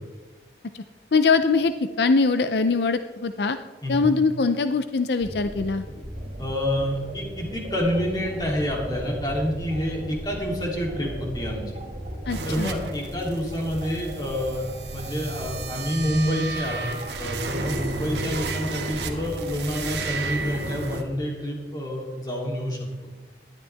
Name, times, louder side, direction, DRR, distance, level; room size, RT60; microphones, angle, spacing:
voice 1, 1.1-3.6 3.9-5.8 12.3-12.7, left 4 dB, 75° left, 10 dB, 0.6 m, -22 dB
sound 1, 5.2-20.6, equal, 55° right, 2.9 m, -37 dB
voice 2, 6.4-11.8 12.4-22.9, equal, 25° left, -2 dB, 3.2 m, -28 dB
sound 2, 12.3-21.0, right 3 dB, 80° right, 1.6 m, -33 dB
19.5 x 12.5 x 3.5 m, 1.3 s
head